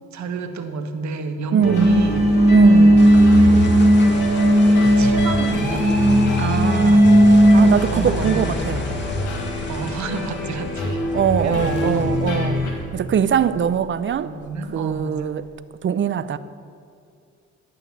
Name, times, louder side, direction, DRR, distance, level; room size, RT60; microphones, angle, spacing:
voice 1, 0.1-2.3 5.0-5.9 7.9-8.6 9.7-11.0 11.3-12.0 14.2-15.3, right 4 dB, 65° right, 1.4 m, -29 dB
voice 2, 1.5-2.1 2.5-3.1 6.4-7.1 7.5-8.9 11.1-14.3 14.7-15.5 15.8-16.4, right 8 dB, 40° right, 0.6 m, -22 dB
sound 1, 1.6-12.7, left 1 dB, 75° left, 2.5 m, -25 dB
sound 2, 1.7-7.7, equal, 20° right, 1.4 m, -15 dB
sound 3, 3.0-15.5, left 2 dB, 35° left, 1.9 m, -35 dB
11.5 x 9.0 x 7.5 m
cardioid pair, 90°, 30 cm